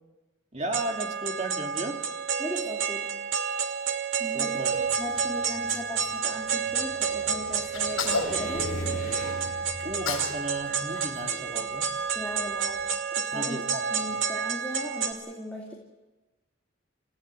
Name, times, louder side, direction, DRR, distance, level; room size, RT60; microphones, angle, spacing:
voice 1, 0.5-2.0 4.3-4.7 9.8-11.9 13.3-13.8 14.1-14.2, right 2 dB, 30° right, 2 dB, 2.5 m, -34 dB
sound 1, 0.7-15.1, right 6 dB, 70° right, 2.6 m, -30 dB
voice 2, 2.4-3.2 4.2-8.7 12.1-15.7, left 1 dB, 5° left, -3 dB, 2.5 m, -38 dB
Car, 4.7-12.9, left 1 dB, 50° left, 3.4 m, -41 dB
Sneeze, 7.7-9.3 9.8-10.4 10.7-12.1, left 4 dB, 80° left, 6.9 m, -34 dB
29.0 x 16.0 x 8.2 m, 1.1 s
head